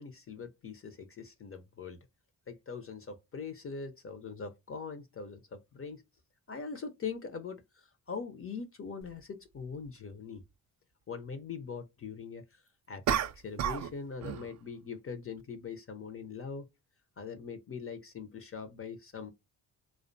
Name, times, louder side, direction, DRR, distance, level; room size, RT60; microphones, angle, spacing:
voice 1, 0.0-2.0 2.5-6.0 6.5-10.4 11.1-12.6 12.9-16.7 17.2-19.3, left 5 dB, 30° left, 0.5 m, -42 dB
sound 1, 9.0-9.1 13.1-13.9 14.2-14.5, right 9 dB, 40° right, 0.4 m, -31 dB
2.4 x 2.1 x 2.5 m
hypercardioid pair, 45°, 43 cm